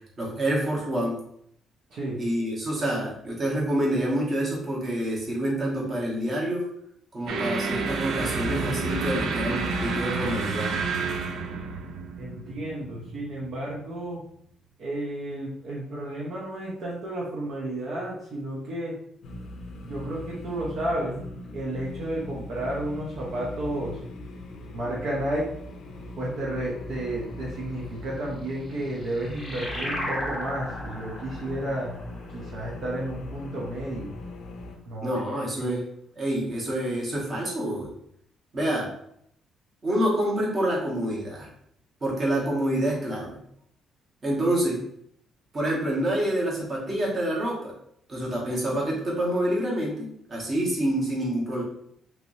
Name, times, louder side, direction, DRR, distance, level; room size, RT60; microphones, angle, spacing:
voice 1, 0.2-1.2 2.2-6.7 7.1-10.7 35.0-35.8 36.2-37.9 38.5-38.9 39.8-41.5 42.0-43.4 44.2-44.9 45.5-47.7 48.1-51.6, right 1 dB, 35° right, -3 dB, 1.2 m, -27 dB
voice 2, 1.9-2.2 12.2-14.2 14.8-18.9 19.8-21.2 21.5-24.0 24.7-25.5 26.2-32.0 32.3-34.1 34.9-35.1 35.6-35.7, right 1 dB, 60° right, -4 dB, 0.8 m, -32 dB
sound 1, 7.3-13.7, right 4 dB, 75° right, 0.4 m, -30 dB
sound 2, 19.2-34.8, left 2 dB, 65° left, 0.5 m, -41 dB
sound 3, 28.5-33.6, equal, ahead, 0.8 m, -36 dB
3.3 x 3.0 x 2.6 m, 0.71 s
cardioid pair, 135°, 0 cm